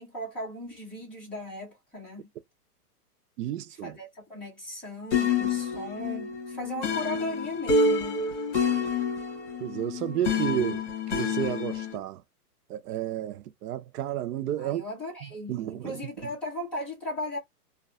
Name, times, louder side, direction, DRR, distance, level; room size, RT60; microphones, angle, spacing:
voice 1, 0.0-2.3 3.5-8.2 14.6-17.4, left 1 dB, ahead, 0.7 m, -37 dB
voice 2, 3.4-3.9 9.6-12.2 12.7-14.8 15.5-15.9, right 12 dB, 75° right, 0.6 m, -31 dB
sound 1, 5.1-12.0, left 4 dB, 50° left, 1.1 m, -28 dB
2.7 x 2.3 x 2.3 m
hypercardioid pair, 165°, 46 cm